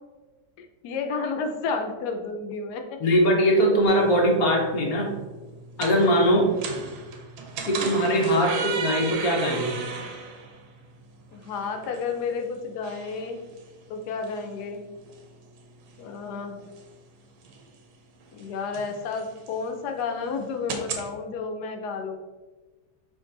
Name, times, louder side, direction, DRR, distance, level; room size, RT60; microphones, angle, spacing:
voice 1, 0.6-3.0 11.3-13.4 13.9-14.8 16.0-16.6 18.3-22.2, left 4 dB, 85° left, 5 dB, 1.2 m, -31 dB
voice 2, 3.0-5.1 5.8-6.5 7.7-9.8, equal, 65° left, 0 dB, 1.4 m, -21 dB
sound 1, 3.9-21.1, right 5 dB, 85° right, 1.3 m, -38 dB
5.2 x 2.6 x 3.7 m, 1.3 s
omnidirectional pair, 1.7 m